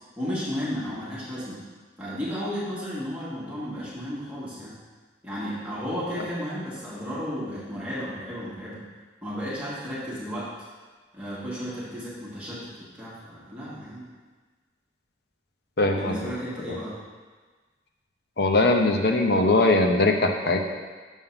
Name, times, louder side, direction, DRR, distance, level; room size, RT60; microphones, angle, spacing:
voice 1, 0.2-1.6 2.0-4.7 5.2-8.8 9.2-10.5 11.1-14.1 15.8-17.0, equal, 10° right, -10 dB, 1.4 m, -33 dB
voice 2, 15.8-16.1 18.4-20.6, left 2 dB, 60° left, 3 dB, 0.7 m, -21 dB
7.3 x 3.7 x 5.7 m, 1.4 s
head